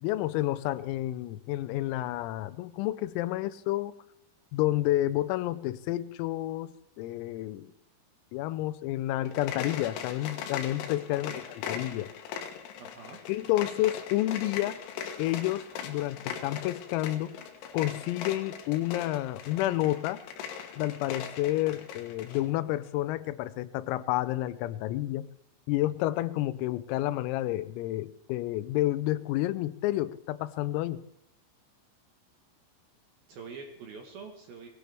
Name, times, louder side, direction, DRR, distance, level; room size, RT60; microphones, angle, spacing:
voice 1, 0.0-3.9 4.5-7.7 8.3-11.3 11.7-12.1 13.3-14.8 15.2-17.3 17.7-20.2 20.8-25.3 25.7-31.0, left 15 dB, 90° left, 13 dB, 3.4 m, -30 dB
sound 1, 9.2-22.5, left 8 dB, 75° left, 3.6 m, -40 dB
voice 2, 11.1-11.4 12.8-13.2 33.3-34.7, right 4 dB, 65° right, 3 dB, 2.5 m, -45 dB
21.0 x 17.0 x 3.5 m, 0.78 s
omnidirectional pair, 5.9 m